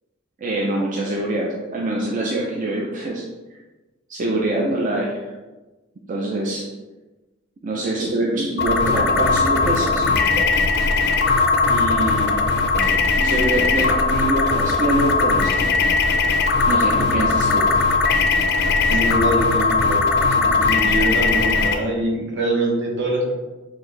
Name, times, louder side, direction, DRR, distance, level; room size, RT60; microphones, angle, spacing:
voice 1, 0.4-3.2 4.1-5.3 6.1-6.6 7.6-10.5 11.7-12.4 13.1-15.8 16.7-17.8, right 1 dB, 40° right, -2 dB, 0.5 m, -24 dB
sound 1, 8.6-21.7, left 4 dB, 55° left, 0.5 m, -19 dB
voice 2, 18.9-23.3, right 1 dB, 60° right, 0 dB, 0.9 m, -24 dB
5.9 x 2.6 x 3.1 m, 1.2 s
head